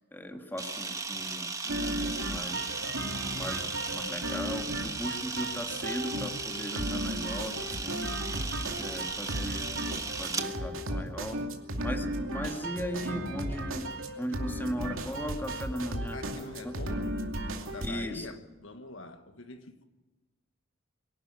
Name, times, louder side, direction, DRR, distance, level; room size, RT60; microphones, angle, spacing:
voice 1, 0.1-2.6 3.3-3.7 3.9-8.4 8.8-11.4 11.7-13.9 14.2-16.2 16.6-17.0 17.8-18.3, equal, 10° left, 2.0 m, -38 dB
Camera, 0.6-10.5, right 4 dB, 15° right, 1.2 m, -36 dB
sound 1, 1.7-17.9, right 1 dB, 80° right, 2.6 m, -35 dB
voice 2, 16.1-17.3 17.7-19.8, left 2 dB, 70° left, 1.5 m, -44 dB
23.5 x 12.0 x 9.5 m
head